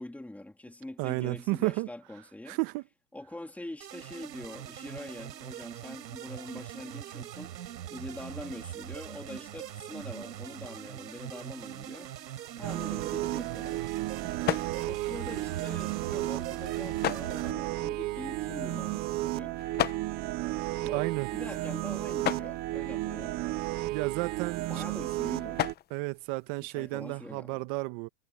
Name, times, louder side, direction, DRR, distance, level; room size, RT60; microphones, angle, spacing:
voice 1, 0.0-2.6 3.1-7.5 7.9-12.2 12.6-13.9 14.8-19.6 20.8-23.4 24.6-25.6 26.7-27.6, left 1 dB, 5° left, 3.2 m, -44 dB
voice 2, 1.0-1.9 2.5-2.8 20.9-21.3 23.9-24.8 25.9-28.1, right 23 dB, 40° right, 1.2 m, -32 dB
sound 1, 3.8-17.5, right 11 dB, 85° right, 7.0 m, -42 dB
sound 2, 12.6-25.7, right 18 dB, 20° right, 0.4 m, -33 dB
sound 3, 12.8-27.2, left 12 dB, 20° left, 0.8 m, -39 dB
supercardioid pair, 140°, 49 cm